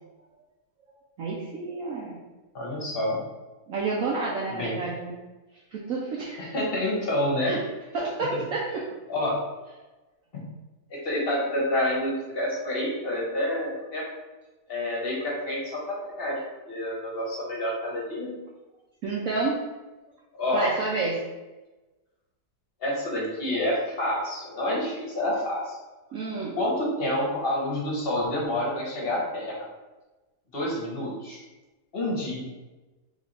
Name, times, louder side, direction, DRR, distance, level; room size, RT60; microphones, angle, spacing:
voice 1, 1.2-2.2 3.7-5.1 5.7-6.5 7.4-7.6 7.9-8.8 19.0-19.6 20.5-21.2 26.1-26.6, right 3 dB, 65° right, -4 dB, 0.9 m, -29 dB
voice 2, 2.5-3.2 4.5-4.8 6.4-7.6 8.3-8.4 9.1-9.4 10.3-10.4 10.9-14.0 14.7-16.4 16.7-18.4 20.3-20.7 22.8-25.8 26.6-29.7 30.5-31.4 31.9-32.4, left 1 dB, 45° left, -3 dB, 1.0 m, -28 dB
3.3 x 2.9 x 4.0 m, 1.1 s
omnidirectional pair, 1.8 m